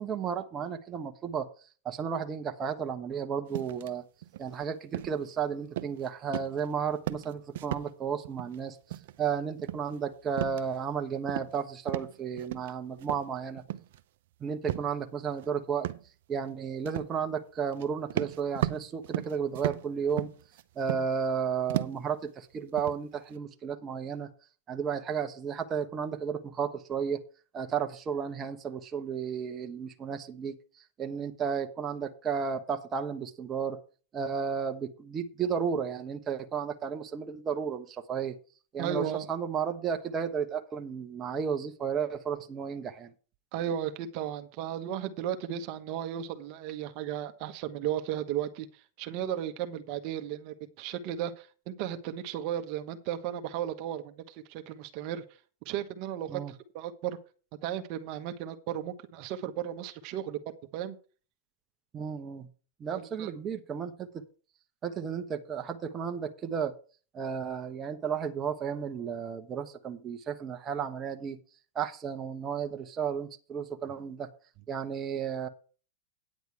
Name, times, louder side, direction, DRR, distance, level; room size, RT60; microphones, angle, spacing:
voice 1, 0.0-1.5 1.8-4.0 4.4-13.6 14.4-15.9 16.3-20.3 20.8-24.3 24.7-27.2 27.5-30.5 31.0-33.8 34.1-38.4 38.7-43.1 56.3-56.5 61.9-62.5 62.8-64.2 64.8-66.7 67.1-71.4 71.7-74.3 74.7-75.5, right 7 dB, 25° right, 5 dB, 1.1 m, -33 dB
sound 1, 3.5-3.9 4.2-4.5 4.9-5.3 5.8-6.1 6.3-6.7 6.9-7.9 8.2-8.6 8.9-9.3 9.6-10.9 11.3-11.6 11.9-12.7 13.0-14.0 14.7-14.9 15.4-15.5 15.8-16.1 16.8-17.1 17.7-17.8 18.1-21.3 21.7-22.1 22.5-23.4, right 14 dB, 70° right, 0.7 m, -35 dB
voice 2, 38.8-39.3 43.5-55.2 55.6-57.2 57.6-60.4 60.7-61.0 62.9-63.3, right 10 dB, 50° right, 7 dB, 1.1 m, -35 dB
9.8 x 7.9 x 4.7 m, 0.37 s
hypercardioid pair, 125°, 0 cm